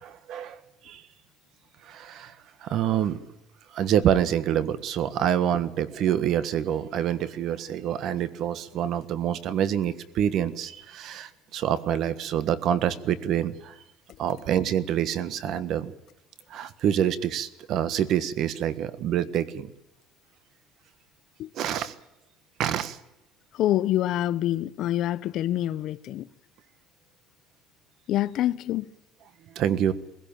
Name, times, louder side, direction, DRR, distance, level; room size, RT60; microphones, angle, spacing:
voice 1, 0.0-1.0 1.8-2.3 2.6-3.2 3.7-13.7 14.2-15.9 16.5-19.7 21.5-21.9 22.6-23.0 29.5-29.9, right 10 dB, 55° right, 1.5 m, -26 dB
voice 2, 23.5-26.3 28.1-28.9, left 13 dB, 55° left, 0.7 m, -26 dB
21.5 x 16.5 x 9.0 m
cardioid pair, 140°, 0 cm